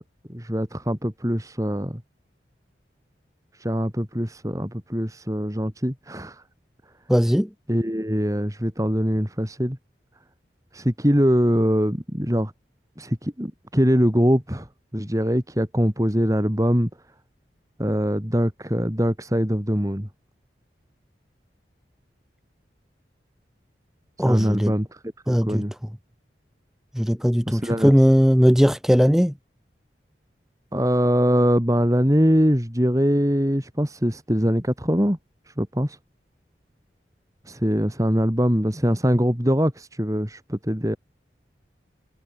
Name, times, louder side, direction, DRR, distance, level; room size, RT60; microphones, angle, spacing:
voice 1, 0.3-2.0 3.5-6.4 7.7-9.8 10.7-12.5 13.0-14.7 14.9-16.9 17.8-20.1 24.2-25.0 25.3-25.7 27.5-27.9 30.7-35.2 35.5-36.0 37.4-41.0, equal, 20° right, 4.8 m, -22 dB
voice 2, 7.1-7.5 24.2-24.7 25.3-25.6 26.9-29.3, equal, ahead, 1.1 m, -18 dB
head